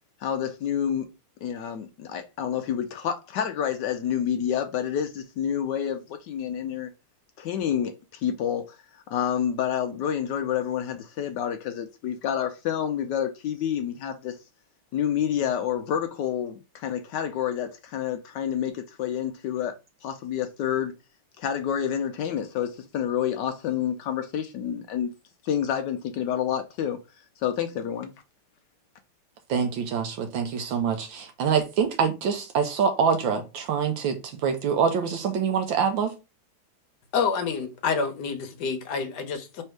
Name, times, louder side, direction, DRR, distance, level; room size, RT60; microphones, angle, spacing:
voice 1, 0.2-1.1 1.4-6.9 7.4-8.8 9.1-14.4 14.9-19.8 20.0-20.9 21.4-25.1 25.4-27.0 27.4-28.1, left 9 dB, 80° left, 0.9 m, -28 dB
voice 2, 29.5-36.1, right 6 dB, 70° right, 1.3 m, -25 dB
voice 3, 37.1-39.6, left 5 dB, 65° left, 1.2 m, -28 dB
3.5 x 3.3 x 4.5 m
omnidirectional pair, 2.4 m